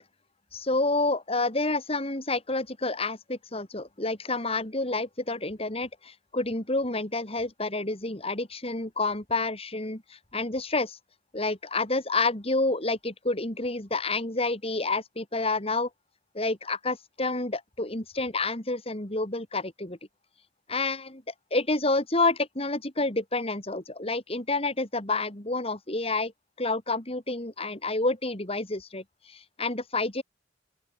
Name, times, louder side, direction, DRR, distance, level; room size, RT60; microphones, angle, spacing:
voice 1, 0.5-11.0 11.3-15.9 16.3-20.0 20.7-26.3 26.6-30.2, left 3 dB, 35° left, 3.8 m, -29 dB
open air
head